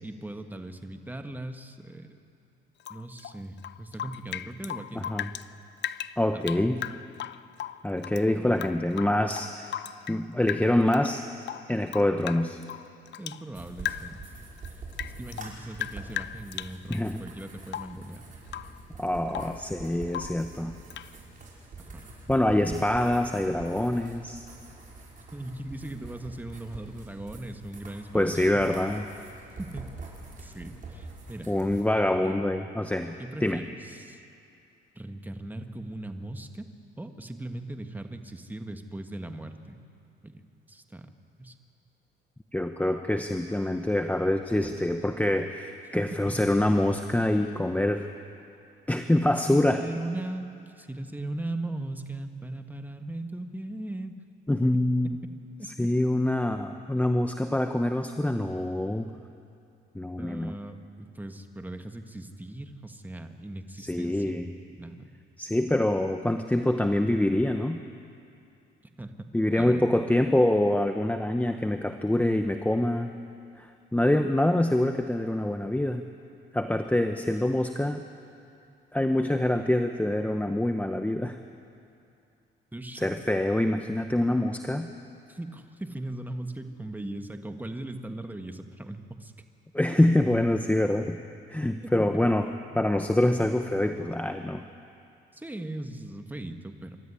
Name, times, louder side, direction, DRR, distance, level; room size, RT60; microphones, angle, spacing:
voice 1, 0.0-2.2 2.9-5.1 6.3-6.5 8.3-8.7 13.2-14.2 15.2-18.2 21.9-22.0 25.3-28.6 29.6-29.9 30.4-31.5 32.2-32.4 33.2-34.2 34.9-36.7 37.0-39.8 40.2-41.1 41.4-41.6 44.6-44.8 45.9-46.4 49.5-50.5 50.8-54.1 60.2-64.4 64.7-65.1 69.0-69.1 69.6-69.8 82.7-83.1 85.3-89.3 95.3-97.0, right 1 dB, 10° right, 6 dB, 1.5 m, -39 dB
Rain / Drip, 2.8-5.5 5.8-8.2 8.5-10.2 10.5-11.1 11.4-13.4 13.8-14.3 14.6-17.1 17.7-18.0 18.5-18.8 19.1-19.6 20.1-20.4 20.9-21.1, left 11 dB, 65° left, 0.6 m, -37 dB
voice 2, 4.9-5.3 6.2-6.8 7.8-9.7 10.1-11.2 11.7-12.6 16.9-17.2 19.0-20.8 22.3-24.4 28.1-29.0 31.5-33.6 42.5-48.1 48.9-49.8 54.5-55.2 55.6-59.1 59.9-60.6 63.8-64.5 65.4-67.8 69.3-73.1 73.6-76.0 76.5-78.0 78.9-81.4 82.9-84.9 89.7-91.2 91.5-92.5 92.7-94.6, left 1 dB, 5° left, 6 dB, 0.9 m, -25 dB
sound 1, 13.5-31.8, right 3 dB, 40° right, 5.4 m, -45 dB
25.0 x 13.0 x 9.8 m, 2.5 s
cardioid pair, 90°, 20 cm